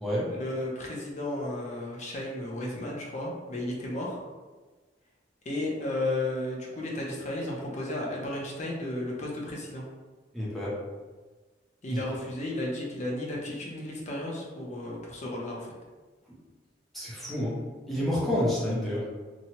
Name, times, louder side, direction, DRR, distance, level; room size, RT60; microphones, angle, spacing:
voice 1, 0.3-4.2 5.4-9.8 11.8-15.7, left 1 dB, 40° left, -3 dB, 0.6 m, -33 dB
voice 2, 10.3-10.8 11.9-12.0 16.9-17.6 17.9-19.0, left 1 dB, ahead, -8 dB, 0.6 m, -29 dB
2.9 x 2.2 x 2.8 m, 1.3 s
head